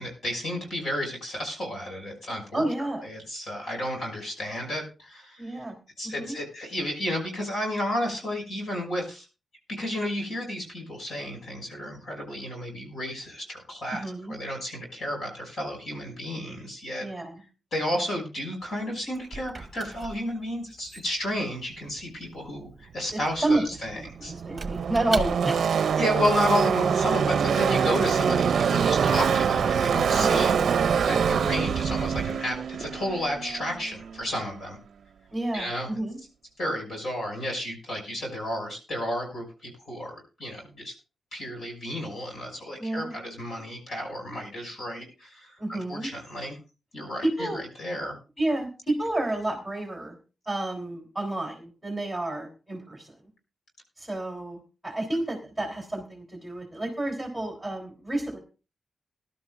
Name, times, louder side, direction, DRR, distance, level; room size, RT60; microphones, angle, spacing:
voice 1, 0.0-2.6 3.0-5.6 6.0-9.3 9.7-17.0 17.7-24.3 26.0-30.7 31.1-34.8 35.5-35.9 36.6-40.9 41.3-46.5 46.9-48.1, left 1 dB, 60° left, 1 dB, 6.1 m, -32 dB
voice 2, 2.5-3.0 5.4-5.8 6.0-6.3 14.0-14.3 17.0-17.4 23.1-23.6 23.9-25.6 30.2-30.4 35.3-36.2 42.8-43.2 45.6-46.1 47.2-47.6 48.4-50.2 50.5-53.1 54.0-58.4, right 2 dB, ahead, 0 dB, 3.4 m, -30 dB
Squeak / Wood, 18.6-25.8, right 3 dB, 25° right, 1.3 m, -39 dB
Car passing by / Race car auto racing, 23.8-34.4, right 7 dB, 70° right, 0.5 m, -24 dB
21.0 x 12.0 x 2.5 m, 0.32 s
wide cardioid pair, 160°, 0 cm